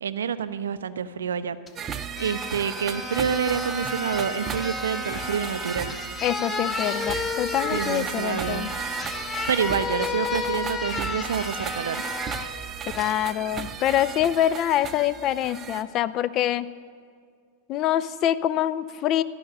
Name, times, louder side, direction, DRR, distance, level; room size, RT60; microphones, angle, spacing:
voice 1, 0.0-1.6 2.2-6.0 7.7-8.7 9.5-12.0, right 7 dB, 65° right, 13 dB, 0.4 m, -28 dB
sound 1, 1.7-1.8 2.1-12.5 13.0-13.2, left 4 dB, 20° left, 0.8 m, -32 dB
sound 2, 1.8-15.8, right 7 dB, 25° right, 0.6 m, -35 dB
voice 2, 6.2-8.7 12.9-16.7 17.7-19.2, left 11 dB, 35° left, 15 dB, 0.3 m, -25 dB
13.0 x 5.6 x 8.8 m, 2.2 s
figure-of-eight pair, 90°, 0 cm